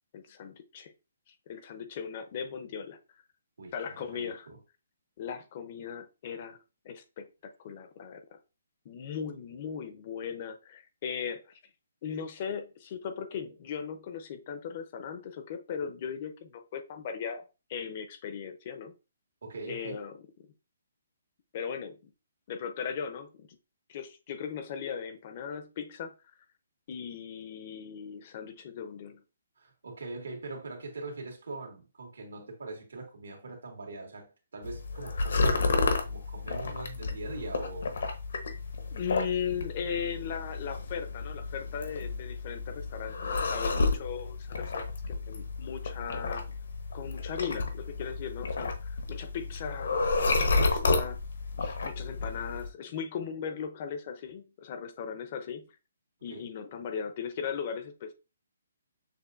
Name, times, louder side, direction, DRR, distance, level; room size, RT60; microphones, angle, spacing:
voice 1, 0.1-0.9 1.3-3.0 3.7-4.5 5.2-6.6 6.8-8.4 8.8-11.6 12.0-18.9 19.7-20.2 21.5-22.1 22.5-23.5 23.9-26.1 26.9-29.2 38.9-46.5 46.9-51.2 51.6-55.7 56.2-58.1, left 7 dB, 35° left, 0.5 m, -38 dB
voice 2, 3.6-4.6 19.4-20.0 29.6-37.9 56.3-56.5, right 3 dB, 85° right, 1.8 m, -42 dB
sound 1, 34.6-52.7, left 3 dB, 70° left, 0.9 m, -31 dB
6.8 x 2.5 x 2.5 m
hypercardioid pair, 170°, 0 cm